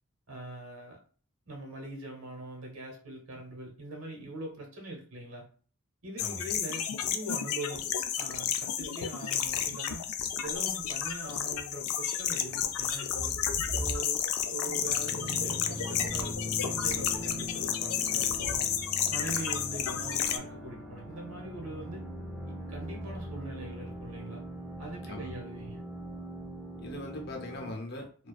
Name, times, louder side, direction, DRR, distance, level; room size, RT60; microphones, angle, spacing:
voice 1, 0.3-1.0 1.5-5.5 6.0-7.9 8.2-10.1 10.4-13.3 13.8-18.7 19.1-22.0 22.5-24.4 24.8-25.8, right 2 dB, 85° right, 0.9 m, -42 dB
sound 1, 6.2-20.4, left 9 dB, 90° left, 0.3 m, -32 dB
sound 2, 10.4-11.2 12.2-14.1 15.6-16.2 16.7-17.5 17.9-18.6, right 1 dB, 60° right, 0.6 m, -42 dB
sound 3, 14.7-27.7, equal, 5° right, 0.4 m, -41 dB
voice 2, 26.8-28.3, left 1 dB, 50° left, 0.6 m, -40 dB
2.4 x 2.2 x 2.3 m
head